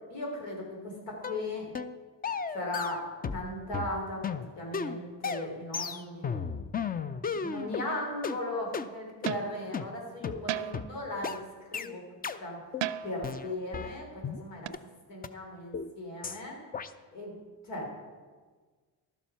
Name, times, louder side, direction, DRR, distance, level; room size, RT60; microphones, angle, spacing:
voice 1, 0.1-1.7 2.5-3.0 3.3-6.4 7.2-12.0 12.4-12.6 13.0-14.7 15.1-16.6 17.1-17.4 17.6-17.9, left 1 dB, 90° left, -1 dB, 3.3 m, -37 dB
sound 1, 1.2-1.4 1.7-1.9 2.2-3.5 3.7-7.9 8.2-8.4 8.7-8.9 9.2-9.4 9.7-9.9 10.2-10.4 10.7-10.9 11.2-11.4 11.7-11.9 12.2-12.4 12.7-12.9 13.2-14.4 14.7-14.8 15.2-15.3 15.7-15.9 16.2-16.4 16.7-16.9, left 6 dB, 25° left, 0.4 m, -34 dB
sound 2, 7.9-8.2 9.3-9.6 10.5-11.0 12.8-13.3 14.7-14.8, right 12 dB, 80° right, 0.5 m, -35 dB
12.0 x 7.2 x 5.7 m, 1.5 s
cardioid pair, 100°, 42 cm